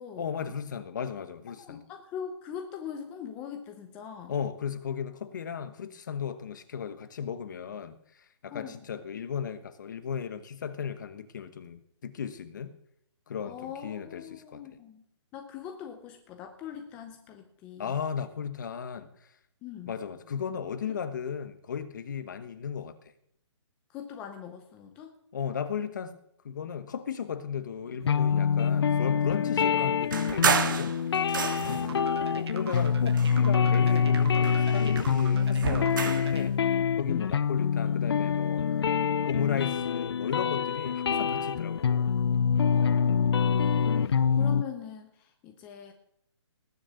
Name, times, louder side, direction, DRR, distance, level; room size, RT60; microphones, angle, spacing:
voice 1, 0.2-1.8 4.3-12.7 13.3-14.6 17.8-19.1 19.9-23.0 25.3-26.2 26.4-30.9 31.6-32.0 32.3-36.6 36.9-38.7 39.2-42.1 43.9-44.3, left 7 dB, 40° left, 12 dB, 1.1 m, -35 dB
voice 2, 1.6-4.3 8.5-8.8 13.4-15.0 15.3-18.0 19.6-20.0 20.9-21.0 23.9-25.2 29.5-29.6 31.6-32.6 37.1-37.4 42.7-45.9, left 8 dB, 10° left, 4 dB, 0.6 m, -42 dB
sound 1, 28.1-44.6, left 6 dB, 55° left, 0.5 m, -25 dB
sound 2, 30.1-32.0 32.7-33.8 34.1-36.4, right 6 dB, 40° right, 1.7 m, -31 dB
sound 3, 31.9-36.5, right 6 dB, 60° right, 1.3 m, -43 dB
19.5 x 6.5 x 8.2 m, 0.72 s
hypercardioid pair, 175°, 16 cm